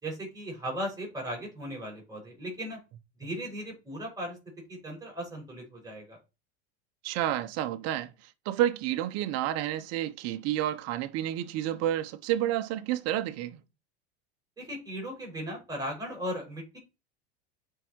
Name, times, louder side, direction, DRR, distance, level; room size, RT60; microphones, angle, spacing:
voice 1, 0.0-2.8 3.2-4.4 4.7-6.2 14.6-16.8, equal, 10° right, 5.8 m, -37 dB
voice 2, 7.0-8.1 8.4-13.6, right 12 dB, 50° right, 1.0 m, -30 dB
8.8 x 4.9 x 4.6 m
supercardioid pair, 110°, 31 cm